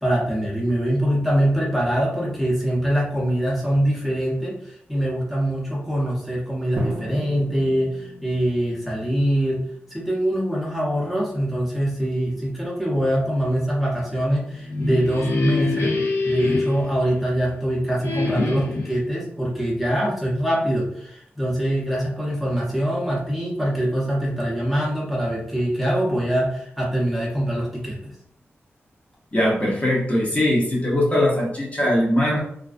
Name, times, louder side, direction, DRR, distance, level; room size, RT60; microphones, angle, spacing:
voice 1, 0.0-4.6 4.9-9.6 9.9-15.9 16.2-28.2, right 1 dB, ahead, -6 dB, 0.7 m, -23 dB
Drum, 6.8-10.5, right 1 dB, 40° right, 0.5 m, -33 dB
sound 1, 14.5-17.6 18.0-19.0, left 3 dB, 85° left, 0.5 m, -25 dB
voice 2, 29.3-32.4, left 1 dB, 30° left, -4 dB, 0.8 m, -21 dB
2.3 x 2.3 x 2.4 m, 0.70 s
wide cardioid pair, 95°, 4 cm